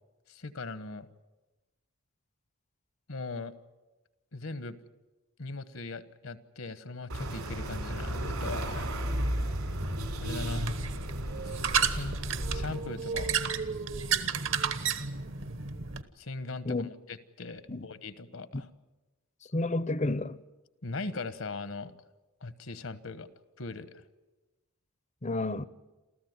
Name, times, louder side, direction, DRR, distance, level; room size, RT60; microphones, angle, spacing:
voice 1, 0.3-1.1 3.1-3.5 4.3-4.8 5.4-8.9 10.2-10.8 11.4-12.2 12.5-13.4 16.2-18.7 20.8-21.9 22.4-23.3 23.6-24.0, left 3 dB, 65° left, 1.2 m, -39 dB
sound 1, 7.1-12.8, right 1 dB, 80° right, 4.2 m, -34 dB
sound 2, 9.1-16.0, right 6 dB, 55° right, 1.1 m, -33 dB
voice 2, 19.5-20.4 25.2-25.7, left 2 dB, 30° left, 0.7 m, -30 dB
28.5 x 14.5 x 9.5 m
head